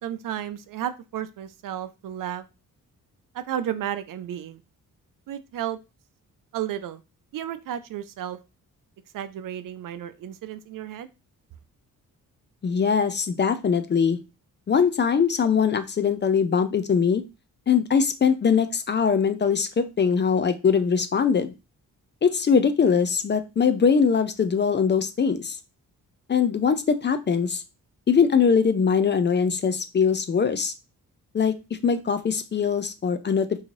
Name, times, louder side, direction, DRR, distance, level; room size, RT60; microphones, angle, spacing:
voice 1, 0.0-2.4 3.3-4.6 5.3-5.8 6.5-7.0 7.3-8.4 9.1-11.1, right 10 dB, 70° right, 12 dB, 0.5 m, -32 dB
voice 2, 12.6-14.2 14.7-17.2 17.7-21.5 22.2-25.6 26.3-27.6 28.1-30.7 31.3-31.5 31.8-33.5, left 6 dB, 35° left, 11 dB, 0.4 m, -22 dB
3.8 x 2.7 x 3.0 m, 0.27 s
cardioid pair, 115°, 34 cm